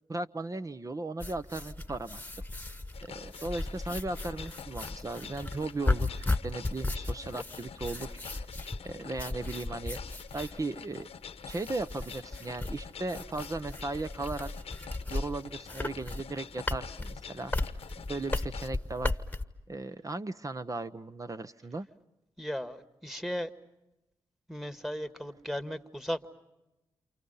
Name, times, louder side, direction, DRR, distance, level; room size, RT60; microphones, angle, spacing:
voice 1, 0.1-2.2 3.0-8.4 8.8-10.0 10.3-11.1 11.5-14.5 15.1-17.5 18.1-19.2 19.7-21.9, right 2 dB, 35° right, 11 dB, 0.9 m, -37 dB
sound 1, 1.2-19.5, left 2 dB, 15° left, 1.3 m, -36 dB
sound 2, 2.9-18.7, left 7 dB, 70° left, 1.0 m, -47 dB
voice 2, 22.4-23.5 24.5-26.3, equal, 5° right, 10 dB, 1.7 m, -36 dB
28.5 x 28.5 x 5.6 m, 0.96 s
supercardioid pair, 45°, 10 cm